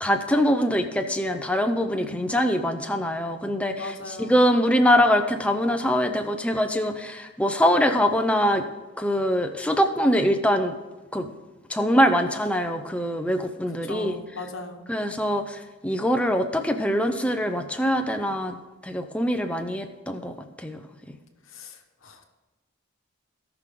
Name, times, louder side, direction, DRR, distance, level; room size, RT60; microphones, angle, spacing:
voice 1, 0.0-8.6 9.0-10.7 11.1-11.3 11.7-14.2 14.9-18.6 18.8-20.3 20.6-20.8, equal, 5° left, 6 dB, 0.6 m, -23 dB
voice 2, 1.9-2.3 3.8-4.4 13.8-14.9 21.5-22.2, left 2 dB, 70° left, 5 dB, 1.2 m, -38 dB
18.0 x 6.0 x 3.8 m, 1.2 s
head